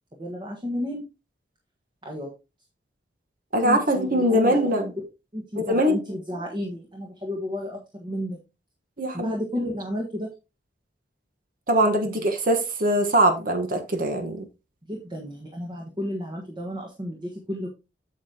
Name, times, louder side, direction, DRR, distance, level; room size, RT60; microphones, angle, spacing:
voice 1, 0.2-1.0 2.0-2.3 3.6-4.9 5.3-8.4 9.1-10.3 14.9-17.7, equal, 25° right, 1.5 m, -32 dB
voice 2, 3.5-4.9 5.5-6.0 9.0-9.3 11.7-14.4, right 1 dB, 50° right, 1.2 m, -22 dB
8.3 x 6.9 x 2.8 m
head